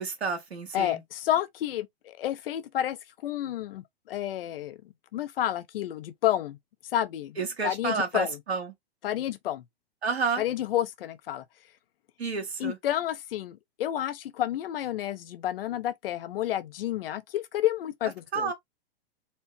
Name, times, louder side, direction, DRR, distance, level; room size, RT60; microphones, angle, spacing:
voice 1, 0.0-1.0 7.4-8.7 10.0-10.4 12.2-12.8 18.3-18.5, right 5 dB, 90° right, 1.8 m, -30 dB
voice 2, 0.7-4.8 5.1-6.6 6.9-7.4 7.6-8.4 9.0-9.6 10.4-11.4 12.6-18.5, left 12 dB, 65° left, 0.7 m, -30 dB
4.3 x 2.1 x 4.1 m
hypercardioid pair, 115°, 31 cm